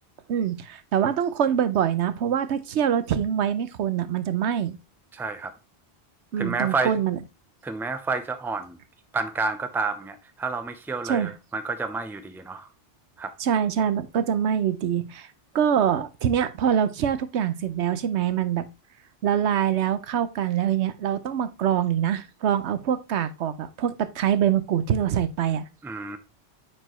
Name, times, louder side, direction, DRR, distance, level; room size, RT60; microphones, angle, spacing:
voice 1, 0.3-4.8 6.3-7.2 11.0-11.3 13.4-15.3 15.5-18.6 19.2-25.7, right 9 dB, 85° right, 1.0 m, -24 dB
voice 2, 5.1-5.5 6.4-6.9 7.6-8.8 9.1-12.7 13.2-13.3 25.8-26.2, right 4 dB, 5° right, 0.5 m, -29 dB
9.0 x 4.5 x 3.1 m
omnidirectional pair, 1.1 m